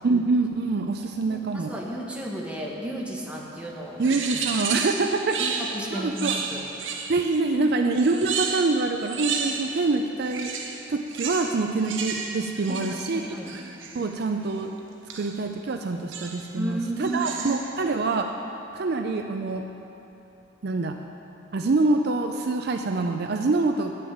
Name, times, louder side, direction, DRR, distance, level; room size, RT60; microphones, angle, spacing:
voice 1, 0.0-1.7 4.0-5.4 5.9-6.4 7.1-10.5 10.9-13.2 13.9-14.7 15.2-18.3 18.7-19.7 20.6-21.0 21.5-23.9, right 3 dB, 55° right, 5 dB, 0.5 m, -25 dB
voice 2, 1.3-4.0 5.4-5.5 5.7-6.6 7.6-7.7 12.7-13.5 16.5-17.2, right 1 dB, 5° right, -3 dB, 1.2 m, -33 dB
sound 1, 4.0-7.4 7.9-9.9 10.2-14.1 15.1-15.5 16.1-16.6 17.0-17.8, right 5 dB, 70° right, 0.8 m, -32 dB
8.8 x 6.8 x 8.6 m, 2.9 s
head